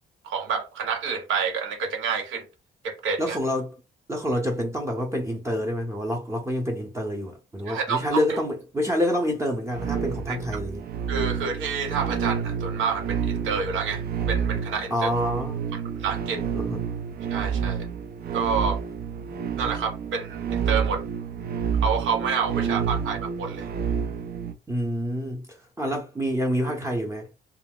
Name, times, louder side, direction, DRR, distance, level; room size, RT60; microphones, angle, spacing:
voice 1, 0.2-2.5 2.8-3.4 7.7-8.4 10.3-10.4 11.1-15.1 15.7-16.4 17.3-17.9 18.3-18.8 19.6-21.0 21.8-23.7, right 6 dB, 80° right, 0.8 m, -28 dB
voice 2, 3.2-3.7 4.1-10.8 14.9-15.6 16.5-16.8 24.7-27.4, equal, 15° right, 0.7 m, -27 dB
sound 1, 9.7-24.5, right 7 dB, 50° right, 0.4 m, -29 dB
2.3 x 2.1 x 3.6 m
cardioid pair, 90°, 20 cm